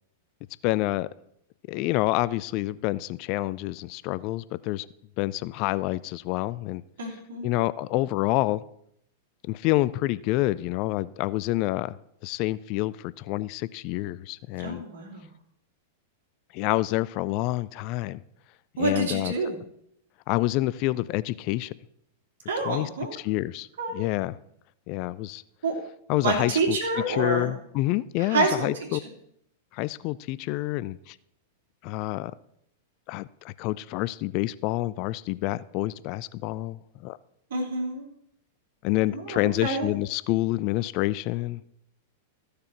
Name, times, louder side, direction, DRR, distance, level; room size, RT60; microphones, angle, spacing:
voice 1, 0.6-1.1 1.7-4.9 5.2-6.8 7.4-8.6 9.5-12.0 12.2-14.8 16.5-18.2 18.8-19.3 20.3-21.7 22.6-23.7 23.9-24.4 24.9-25.4 26.1-26.8 27.1-29.0 29.7-31.2 31.8-32.3 33.1-37.2 38.8-41.6, left 18 dB, 45° left, 18 dB, 0.4 m, -28 dB
voice 2, 7.0-7.5 14.6-15.3 18.8-19.5 22.5-23.1 23.8-24.0 25.6-25.7 26.2-27.5 28.2-28.9 37.5-38.0 39.1-39.9, right 3 dB, 65° right, 1 dB, 3.0 m, -28 dB
14.5 x 6.6 x 4.5 m, 0.73 s
figure-of-eight pair, 95°, 0 cm